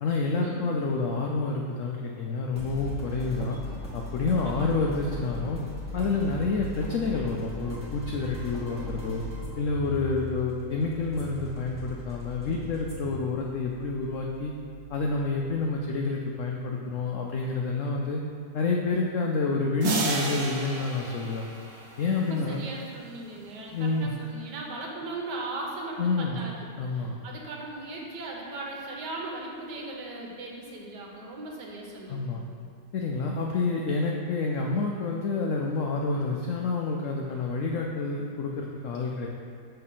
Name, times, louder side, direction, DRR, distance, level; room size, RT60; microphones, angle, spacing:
voice 1, 0.0-3.6 3.9-5.6 5.9-9.2 9.6-14.5 14.9-18.2 18.5-21.5 22.0-22.6 23.7-24.1 26.0-26.5 26.8-27.2 32.1-32.4 32.9-39.3, left 3 dB, 80° left, 0 dB, 0.7 m, -28 dB
sound 1, 2.6-15.9, left 1 dB, 5° right, 1.2 m, -39 dB
sound 2, 19.8-22.3, right 3 dB, 55° right, 0.9 m, -32 dB
voice 2, 22.1-32.4, right 2 dB, 80° right, -2 dB, 1.5 m, -38 dB
6.6 x 3.3 x 5.5 m, 2.4 s
omnidirectional pair, 1.9 m